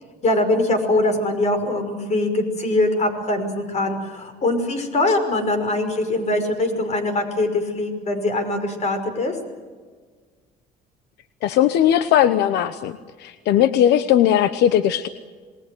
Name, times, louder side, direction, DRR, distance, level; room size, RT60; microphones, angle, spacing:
voice 1, 0.2-9.4, left 2 dB, 40° left, 8 dB, 5.6 m, -22 dB
voice 2, 11.4-15.1, left 11 dB, 80° left, 12 dB, 1.0 m, -18 dB
27.5 x 20.5 x 7.9 m, 1.5 s
cardioid pair, 110°, 17 cm